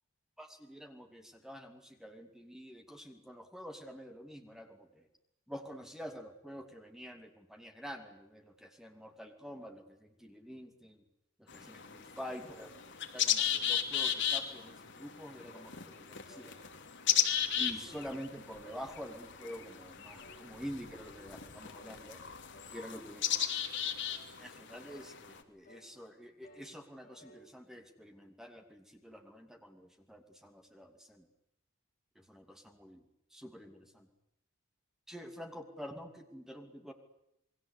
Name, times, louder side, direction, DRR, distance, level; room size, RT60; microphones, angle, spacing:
voice 1, 0.4-5.0 5.5-11.0 11.4-12.7 13.1-16.5 17.6-22.2 22.7-23.2 24.4-31.2 32.3-33.0 33.3-34.1 35.1-36.9, equal, ahead, 5 dB, 2.8 m, -47 dB
sound 1, 11.5-25.4, left 9 dB, 55° left, 2.8 m, -36 dB
sound 2, 15.5-15.8 16.3-16.5 17.1-17.3 17.9-18.1 18.6-18.9 19.4-19.7 20.2-20.4 21.0-21.2 21.7-22.0 22.5-22.8 23.3-23.5 24.1-24.3 24.8-25.1 25.6-25.9 26.4-26.7 27.0-27.5, equal, 35° left, 7.8 m, -58 dB
28.5 x 21.5 x 8.5 m, 0.83 s
head